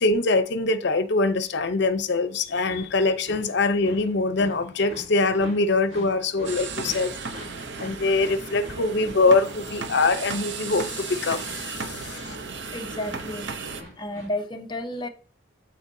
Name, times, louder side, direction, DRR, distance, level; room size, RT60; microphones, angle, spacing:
voice 1, 0.0-7.1 7.8-12.4, left 3 dB, 60° left, 0.7 m, -23 dB
sound 1, 2.5-14.3, left 1 dB, 90° right, 3.4 m, -45 dB
sound 2, 6.4-13.8, right 4 dB, 65° right, 0.7 m, -35 dB
voice 2, 12.7-13.5 14.0-15.1, left 1 dB, 25° left, 0.7 m, -31 dB
12.0 x 4.5 x 2.7 m
head